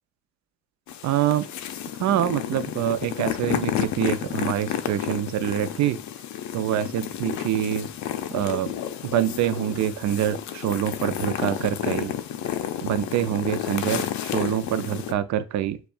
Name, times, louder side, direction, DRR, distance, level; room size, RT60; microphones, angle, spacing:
sound 1, 0.9-15.1, left 10 dB, 70° left, 0.5 m, -31 dB
voice 1, 1.0-1.5 2.0-6.0 6.5-7.9 8.3-8.7 9.0-12.1 12.8-15.8, right 11 dB, 70° right, 0.5 m, -25 dB
6.8 x 2.3 x 2.3 m
cardioid pair, 90°, 30 cm